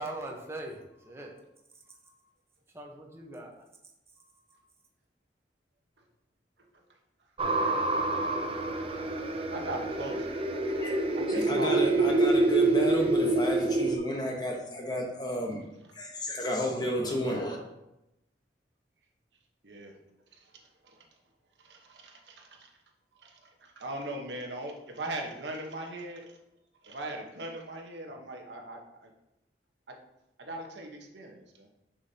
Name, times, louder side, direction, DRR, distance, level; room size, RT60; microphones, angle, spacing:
voice 1, 0.0-1.3 2.0-2.1 2.7-3.5, right 1 dB, 15° right, 0 dB, 0.9 m, -40 dB
sound 1, 7.4-14.0, right 2 dB, 35° right, 0.5 m, -26 dB
voice 2, 9.5-10.3 11.3-12.1 19.6-19.9 20.8-21.1 21.6-22.7 23.2-26.4 26.8-29.1 29.9-30.0 30.4-31.7, right 1 dB, 90° right, 2 dB, 1.1 m, -39 dB
voice 3, 10.8-15.6 15.9-17.6, equal, 25° left, 1 dB, 0.9 m, -32 dB
6.3 x 6.2 x 2.8 m, 0.89 s
head